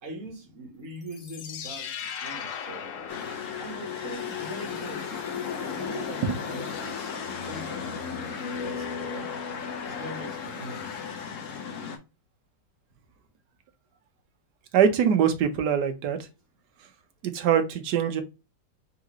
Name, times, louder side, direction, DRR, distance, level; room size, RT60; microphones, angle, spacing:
voice 1, 0.0-2.9 3.6-5.2 5.7-7.1 7.4-8.0 8.3-9.4 9.8-11.0, right 1 dB, 45° right, 1.5 m, -42 dB
sound 1, 1.0-4.1, left 7 dB, 75° left, 0.7 m, -38 dB
sound 2, 3.1-12.0, left 6 dB, 55° left, 1.0 m, -34 dB
voice 2, 14.7-16.2 17.2-18.2, right 8 dB, 65° right, 1.3 m, -23 dB
3.8 x 3.8 x 3.0 m
omnidirectional pair, 2.0 m